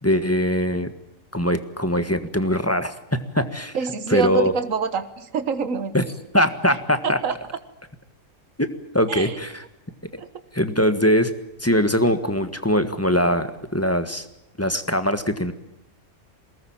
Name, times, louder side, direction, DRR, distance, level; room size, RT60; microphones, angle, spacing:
voice 1, 0.0-0.9 1.3-3.0 3.3-3.8 4.1-4.5 5.9-6.0 6.3-7.2 8.6-8.7 8.9-9.6 10.5-11.3 11.6-14.3 14.6-15.5, equal, 10° left, 10 dB, 1.5 m, -21 dB
voice 2, 3.7-6.0 7.0-7.4 9.1-9.4 10.2-10.3, right 5 dB, 80° right, 11 dB, 1.7 m, -26 dB
22.5 x 19.0 x 8.8 m, 0.90 s
omnidirectional pair, 1.4 m